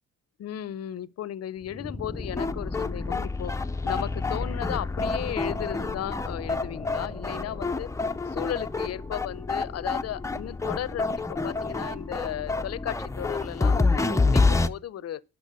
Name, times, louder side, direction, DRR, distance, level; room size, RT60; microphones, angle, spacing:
voice 1, 0.4-7.9 8.3-15.2, left 11 dB, 55° left, 0.7 m, -35 dB
sound 1, 1.7-14.7, left 3 dB, 10° left, 0.6 m, -28 dB
11.5 x 6.0 x 6.5 m
cardioid pair, 90°, 30 cm